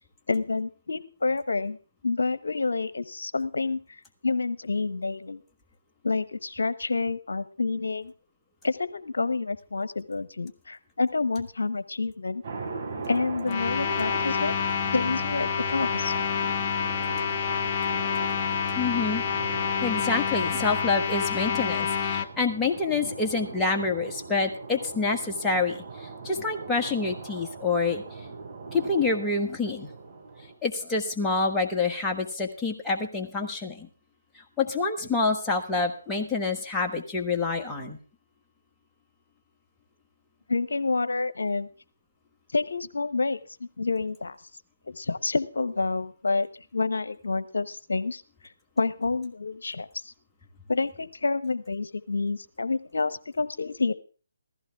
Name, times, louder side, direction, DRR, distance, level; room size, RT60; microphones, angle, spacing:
voice 1, 0.3-1.8 2.0-3.8 4.2-5.4 6.0-8.1 8.6-12.4 13.1-14.5 14.9-16.1 40.5-41.7 42.5-44.4 44.9-46.5 46.7-48.2 48.8-49.9 50.7-53.9, left 3 dB, 70° left, 15 dB, 1.0 m, -28 dB
sound 1, 12.4-30.5, right 4 dB, 45° right, 5.2 m, -40 dB
sound 2, 13.4-22.3, left 7 dB, 30° left, 0.9 m, -28 dB
voice 2, 18.7-19.2 19.8-28.0 28.7-29.9 30.6-33.9 34.6-38.0, left 4 dB, 10° left, 0 dB, 1.5 m, -27 dB
15.5 x 14.5 x 3.6 m, 0.38 s
figure-of-eight pair, 150°, 0 cm